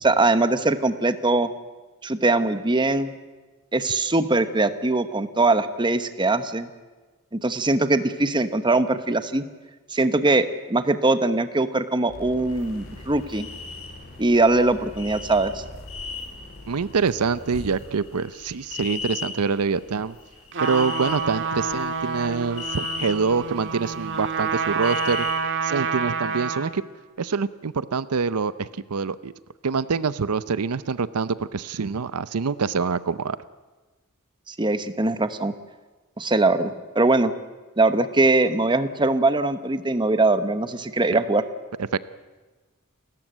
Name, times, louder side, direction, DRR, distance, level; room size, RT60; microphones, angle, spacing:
voice 1, 0.0-1.5 2.0-3.1 3.7-6.7 7.3-9.4 9.9-13.5 14.2-15.6 34.5-35.5 36.2-37.3 37.8-41.4, right 2 dB, 20° right, 11 dB, 1.0 m, -21 dB
sound 1, 12.1-17.5, left 1 dB, 40° left, 4.6 m, -43 dB
sound 2, 12.5-25.3, left 4 dB, 75° left, 7.3 m, -38 dB
voice 2, 16.7-20.1 20.6-25.3 25.6-26.8 27.2-29.3 29.6-33.4 41.9-42.0, right 5 dB, 90° right, 16 dB, 0.6 m, -25 dB
Trumpet, 20.5-26.8, right 5 dB, 55° right, 1.8 m, -28 dB
30.0 x 13.5 x 9.0 m, 1.3 s
head